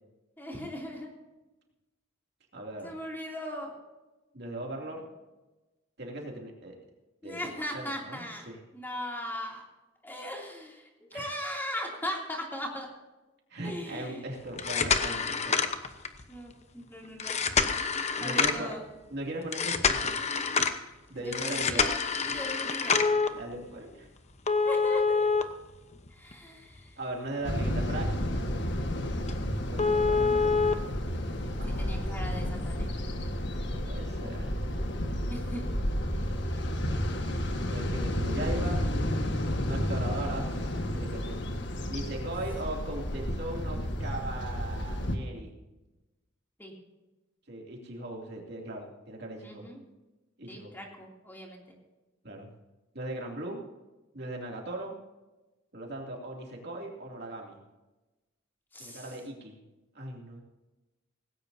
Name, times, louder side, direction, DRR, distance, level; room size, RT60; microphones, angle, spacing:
voice 1, 0.4-1.1 2.8-3.7 7.2-8.5 8.7-9.6 10.0-12.9 13.6-14.3 16.3-17.4 18.2-18.8 21.1-21.9 22.2-23.0 24.6-25.3 26.1-26.9 31.8-32.9 35.3-35.7 38.4-39.5 46.6-46.7 49.4-49.8 50.5-51.6 58.7-59.0, equal, 10° left, -1 dB, 2.8 m, -39 dB
voice 2, 2.5-2.9 4.3-5.0 6.0-6.8 7.2-8.6 11.1-11.4 13.5-15.6 18.2-18.7 19.1-20.2 21.1-21.9 23.3-24.1 27.0-28.2 29.7-30.6 31.6-32.4 33.7-34.6 37.7-38.8 39.6-40.5 40.9-41.4 41.9-45.5 47.5-49.7 50.4-50.7 52.2-52.5 52.9-53.6 54.1-55.0 55.7-57.6 58.8-59.6 59.9-60.4, right 1 dB, 55° right, 0 dB, 2.7 m, -39 dB
sound 1, 14.5-16.2 17.2-18.7 19.5-20.8 21.3-23.3 24.5-26.3 26.8-26.9 27.4-27.5 28.0-28.1 28.4-28.5 28.9-29.0 29.3-29.4 29.8-30.7 31.8-31.9, left 5 dB, 35° left, 1.0 m, -27 dB
sound 2, 27.4-45.2, equal, 60° left, 1.6 m, -31 dB
18.5 x 16.5 x 2.8 m, 1.1 s
head